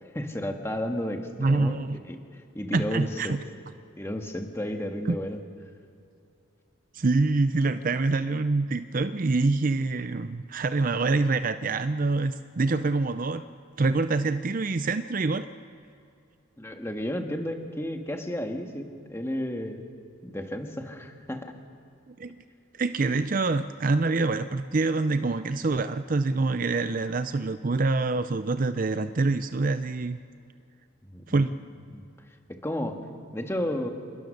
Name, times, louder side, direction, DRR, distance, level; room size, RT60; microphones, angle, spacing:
voice 1, 0.0-1.7 2.0-3.4 4.0-5.4 16.6-19.9 20.2-21.5 31.0-31.4 31.9-32.0 32.5-33.0 33.3-33.9, left 1 dB, 10° left, 4 dB, 1.6 m, -32 dB
voice 2, 1.4-2.0 2.7-3.4 5.1-5.2 6.9-13.4 13.8-15.5 22.1-22.4 22.8-30.2 31.3-31.6, right 3 dB, 40° right, 11 dB, 0.5 m, -26 dB
28.0 x 21.0 x 6.5 m, 2.5 s
head